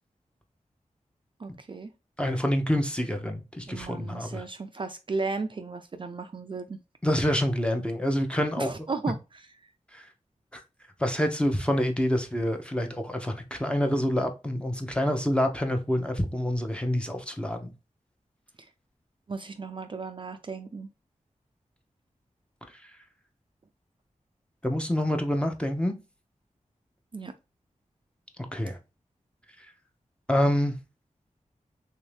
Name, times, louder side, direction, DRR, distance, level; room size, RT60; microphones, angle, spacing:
voice 1, 1.4-1.9 3.7-6.8 8.6-9.2 9.6-9.7 18.6-18.7 19.3-20.9 27.1-27.3, right 4 dB, 40° right, 0.4 m, -35 dB
voice 2, 2.2-4.4 7.0-8.7 9.9-10.1 10.5-10.6 11.0-17.7 22.8-22.9 24.6-25.9 28.5-28.8 30.3-30.8, equal, 10° left, 0.7 m, -27 dB
3.5 x 2.7 x 3.2 m
wide cardioid pair, 90°, 13 cm